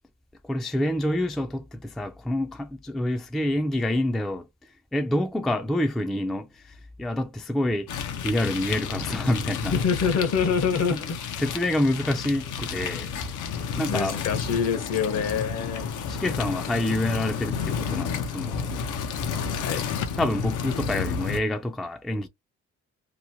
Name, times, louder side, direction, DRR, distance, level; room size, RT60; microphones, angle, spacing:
voice 1, 0.5-4.5 4.9-7.9 8.2-9.7 10.9-11.0 11.4-13.1 13.8-14.2 16.1-18.8 20.2-22.3, left 1 dB, ahead, 0.3 m, -27 dB
sound 1, 7.9-21.4, left 6 dB, 80° left, 0.7 m, -31 dB
voice 2, 9.7-11.2 13.9-15.9 19.5-19.8, left 6 dB, 55° left, 0.9 m, -25 dB
2.9 x 2.0 x 2.6 m
cardioid pair, 90°, 30 cm